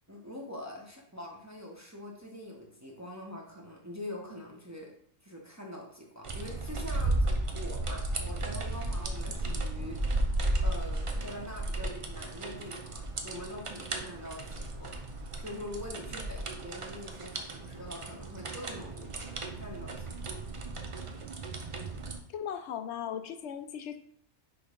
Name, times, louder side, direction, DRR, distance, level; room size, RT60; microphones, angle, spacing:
voice 1, 0.1-4.9 5.2-7.3 7.5-10.3 10.6-19.1 19.5-20.3, left 1 dB, 15° right, -2 dB, 1.0 m, -44 dB
sound 1, 6.2-22.2, right 2 dB, 35° right, 0.6 m, -34 dB
voice 2, 22.3-24.0, left 9 dB, 80° left, 9 dB, 0.9 m, -37 dB
6.2 x 3.1 x 5.1 m, 0.63 s
omnidirectional pair, 1.2 m